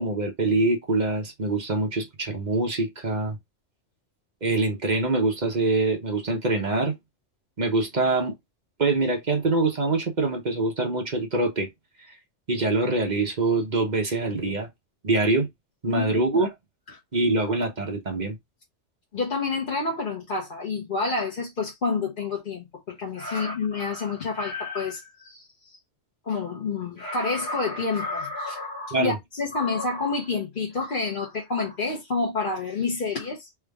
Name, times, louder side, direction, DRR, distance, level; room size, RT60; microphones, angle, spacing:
voice 1, 0.0-3.4 4.4-6.9 7.6-8.3 8.8-11.7 12.5-14.7 15.0-15.5 15.8-16.5 17.1-18.4 28.9-29.1, right 3 dB, 40° right, 1.0 m, -24 dB
voice 2, 15.9-16.4 16.9-17.0 17.4-17.5 19.1-25.5 26.2-33.5, left 4 dB, 45° left, 1.0 m, -29 dB
3.5 x 2.5 x 3.3 m
omnidirectional pair, 1.3 m